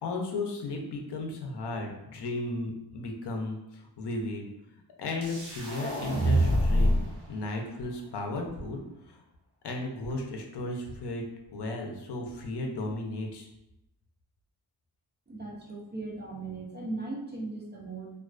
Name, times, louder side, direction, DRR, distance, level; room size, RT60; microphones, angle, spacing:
voice 1, 0.0-4.5 5.0-8.8 9.1-9.2 9.6-11.2 11.5-13.5, left 2 dB, 80° left, 2 dB, 0.6 m, -35 dB
sound 1, 5.2-7.2, equal, 50° right, 0.8 m, -26 dB
voice 2, 15.3-18.1, right 3 dB, 25° right, -2 dB, 0.4 m, -38 dB
2.4 x 2.3 x 2.3 m, 0.88 s
wide cardioid pair, 135°, 40 cm